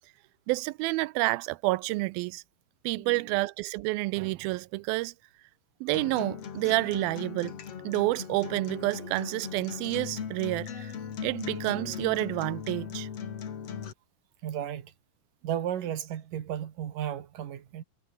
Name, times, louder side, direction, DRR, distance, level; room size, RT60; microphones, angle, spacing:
voice 1, 0.5-2.4 2.9-5.1 5.8-7.5 7.8-10.9 11.2-13.1, right 21 dB, 85° right, 2.4 m, -29 dB
voice 2, 3.0-3.4 10.7-10.8 14.4-14.9 15.4-17.8, right 10 dB, 65° right, 3.4 m, -34 dB
Acoustic guitar, 5.9-13.9, left 7 dB, 45° left, 2.9 m, -38 dB
omnidirectional pair, 4.3 m